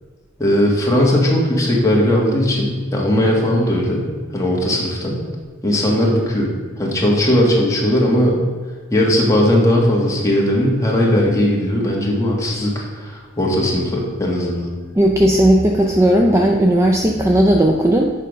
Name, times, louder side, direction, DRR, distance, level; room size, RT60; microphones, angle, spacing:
voice 1, 0.4-4.1 4.3-5.2 5.6-6.5 6.8-8.4 8.9-14.7, left 1 dB, 15° left, -2 dB, 1.3 m, -17 dB
voice 2, 15.0-18.1, right 1 dB, 15° right, 1 dB, 0.4 m, -15 dB
6.8 x 5.0 x 5.1 m, 1.5 s
head